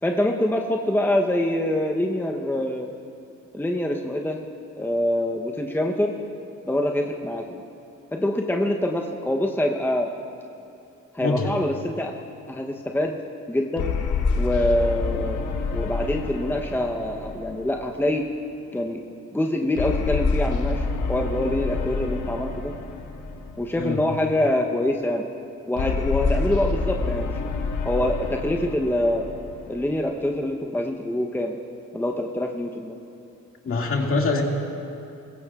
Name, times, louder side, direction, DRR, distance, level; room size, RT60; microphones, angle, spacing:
voice 1, 0.0-2.9 3.5-4.4 4.8-6.1 6.6-7.6 8.1-10.1 11.1-12.1 12.5-13.1 13.5-13.9 14.4-15.4 15.7-18.3 18.7-19.0 19.3-22.7 23.6-25.2 25.7-27.4 27.8-29.2 29.7-31.6 31.9-33.0, left 1 dB, 5° left, 2 dB, 0.8 m, -25 dB
voice 2, 11.2-11.5 23.8-24.0 33.6-34.4, left 3 dB, 45° left, 0 dB, 2.1 m, -24 dB
sound 1, 13.8-18.3 19.8-24.1 25.8-30.3, left 4 dB, 75° left, 1.2 m, -28 dB
22.0 x 16.5 x 2.4 m, 2.7 s
cardioid pair, 90°, 30 cm